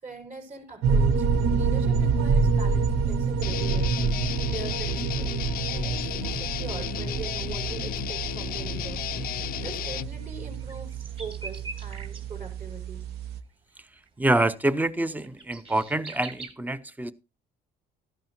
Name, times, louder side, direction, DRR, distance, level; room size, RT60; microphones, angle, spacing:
voice 1, 0.0-5.4 5.7-9.0 9.3-13.1, right 5 dB, 50° right, 5.8 m, -41 dB
sound 1, 0.8-13.4, right 5 dB, 75° right, 1.0 m, -27 dB
Guitar, 3.4-10.1, left 12 dB, 60° left, 0.5 m, -33 dB
sound 2, 8.8-8.9 9.2-9.3 9.5-12.3 13.5-13.6 14.0-16.5, right 3 dB, 30° right, 3.1 m, -43 dB
voice 2, 14.2-17.1, right 1 dB, 10° right, 0.7 m, -26 dB
14.0 x 11.5 x 3.0 m
cardioid pair, 110°, 17 cm